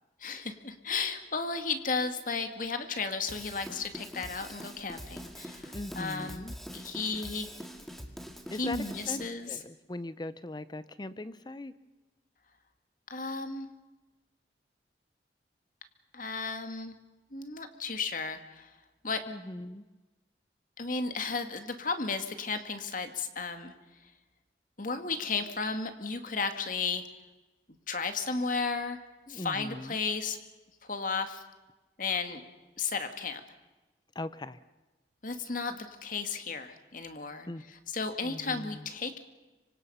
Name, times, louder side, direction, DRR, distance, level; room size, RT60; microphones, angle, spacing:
voice 1, 0.2-7.5 8.6-9.5 13.1-13.7 16.1-17.0 17.3-18.7 19.0-19.2 20.8-23.7 24.8-27.0 27.7-29.0 29.3-30.4 30.8-31.4 32.0-32.4 32.8-33.4 35.2-37.5 37.9-39.2, left 4 dB, 50° left, 7 dB, 2.1 m, -34 dB
Drum kit / Drum, 3.3-9.3, equal, ahead, 2.1 m, -44 dB
voice 2, 5.7-6.6 8.5-11.7 19.3-19.8 29.3-30.0 34.1-34.6 37.4-37.7 38.2-38.9, left 1 dB, 25° left, 15 dB, 0.6 m, -40 dB
25.5 x 25.0 x 5.6 m, 1.1 s
head